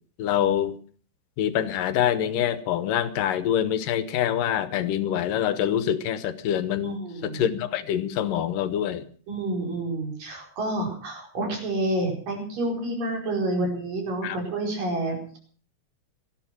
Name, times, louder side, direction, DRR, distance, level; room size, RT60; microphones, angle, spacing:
voice 1, 0.2-0.8 1.4-9.0 14.2-14.4, left 10 dB, 80° left, 13 dB, 2.8 m, -25 dB
voice 2, 6.8-7.4 9.3-15.4, right 1 dB, 85° right, 1 dB, 6.6 m, -29 dB
18.0 x 13.5 x 6.0 m, 0.44 s
omnidirectional pair, 3.8 m